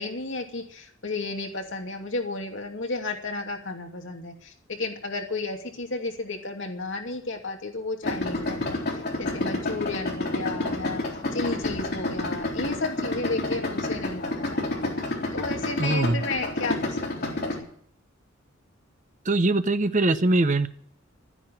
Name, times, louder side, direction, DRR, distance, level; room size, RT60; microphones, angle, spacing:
voice 1, 0.0-8.8 9.2-14.9 15.3-17.7, left 3 dB, 65° left, 2 dB, 2.8 m, -33 dB
Idling, 8.0-17.6, left 2 dB, 50° left, 4.0 m, -29 dB
voice 2, 15.8-16.2 19.3-20.7, right 2 dB, 40° right, 12 dB, 0.8 m, -22 dB
12.5 x 10.0 x 9.0 m, 0.63 s
head